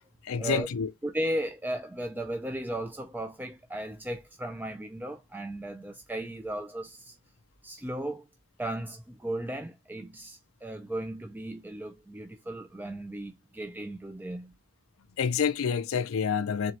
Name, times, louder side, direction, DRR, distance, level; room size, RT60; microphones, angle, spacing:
voice 1, 0.2-0.9 15.2-16.7, left 6 dB, 65° left, 0.4 m, -28 dB
voice 2, 1.0-7.2 7.6-8.3 8.6-14.5, right 1 dB, 10° right, 0.3 m, -36 dB
4.2 x 2.9 x 3.0 m
head